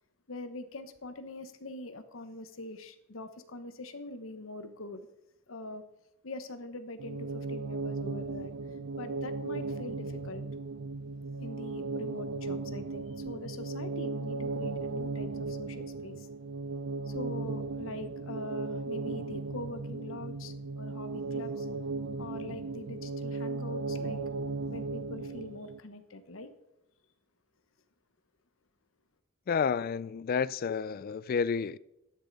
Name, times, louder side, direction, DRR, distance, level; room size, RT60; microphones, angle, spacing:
voice 1, 0.3-5.1 5.5-5.8 6.2-8.5 9.0-10.4 11.4-16.3 17.1-21.7 22.2-24.2 24.7-26.5, left 2 dB, 70° left, 1.1 m, -43 dB
sound 1, 7.0-25.8, right 3 dB, 90° right, 0.5 m, -36 dB
voice 2, 29.5-31.8, left 6 dB, 45° left, 0.3 m, -30 dB
13.5 x 10.5 x 4.1 m
head